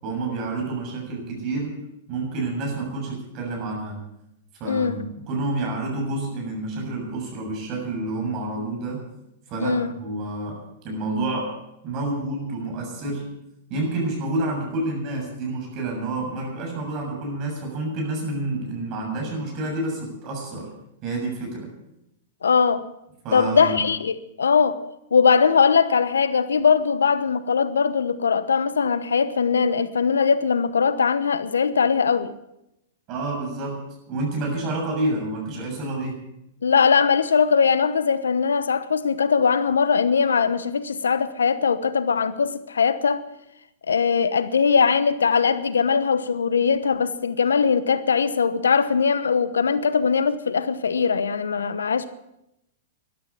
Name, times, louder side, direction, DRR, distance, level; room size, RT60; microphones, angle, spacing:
voice 1, 0.0-1.7 2.1-4.0 4.6-9.0 9.5-11.6 11.8-13.3 13.7-20.7 21.0-21.7 23.2-23.9 33.1-36.2, right 2 dB, 40° right, 7.2 m, -29 dB
voice 2, 4.7-5.0 9.6-9.9 22.4-22.9 23.3-24.8 25.1-32.3 36.6-43.3 43.9-52.1, left 6 dB, 85° left, 1.0 m, -20 dB
13.0 x 12.0 x 8.4 m
hypercardioid pair, 110°, 0 cm